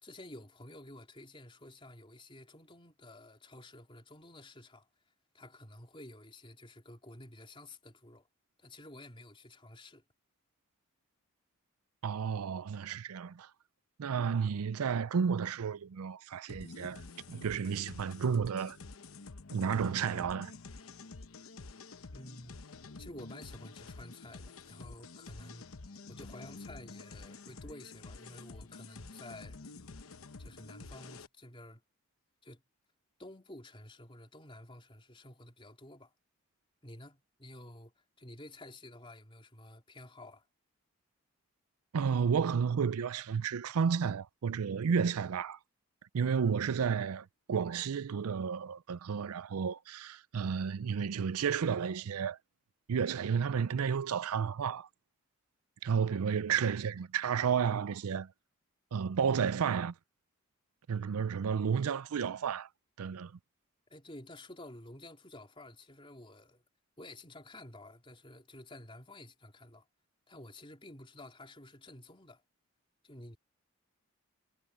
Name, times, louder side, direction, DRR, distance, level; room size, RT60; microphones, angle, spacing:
voice 1, 0.0-4.9 5.3-8.3 8.6-10.0 22.1-22.6 23.0-25.7 26.1-29.8 30.4-31.8 32.4-32.6 33.2-36.1 36.8-40.5 63.9-66.6 67.0-69.9 70.3-72.4 73.0-73.4, left 1 dB, 25° left, 3.8 m, -51 dB
voice 2, 12.0-13.5 14.0-17.0 17.3-18.8 19.5-20.5 41.9-45.6 46.1-52.4 52.9-54.9 55.8-58.3 58.9-59.9 60.9-62.7 63.0-63.3, right 6 dB, 85° right, 0.4 m, -32 dB
sound 1, 16.5-31.3, left 3 dB, 70° left, 1.0 m, -49 dB
head